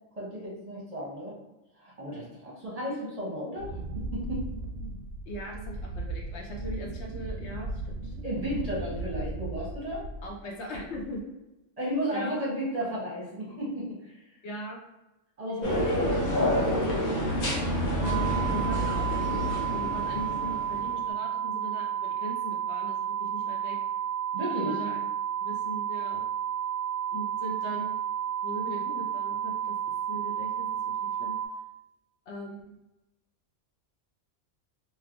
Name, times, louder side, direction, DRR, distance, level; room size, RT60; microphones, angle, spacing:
voice 1, 0.2-1.3 1.8-4.4 8.2-10.0 11.8-14.2 15.4-16.8 24.3-24.8, equal, 35° right, -6 dB, 0.8 m, -34 dB
Wind, 3.6-10.4 10.7-11.2, right 2 dB, 65° right, 0.7 m, -37 dB
voice 2, 5.3-8.1 10.2-11.3 12.1-12.4 14.4-14.8 15.5-16.1 17.9-23.8 24.6-25.0 25.4-26.3 27.1-28.0 28.4-29.8 30.1-30.7 31.2-31.3 32.3-32.6, equal, 65° left, 0 dB, 0.8 m, -39 dB
sound 1, 15.6-21.0, equal, 90° left, 1.3 m, -28 dB
sound 2, 18.0-31.5, right 9 dB, 10° left, 1.1 m, -31 dB
3.1 x 2.9 x 2.5 m, 0.98 s
omnidirectional pair, 1.3 m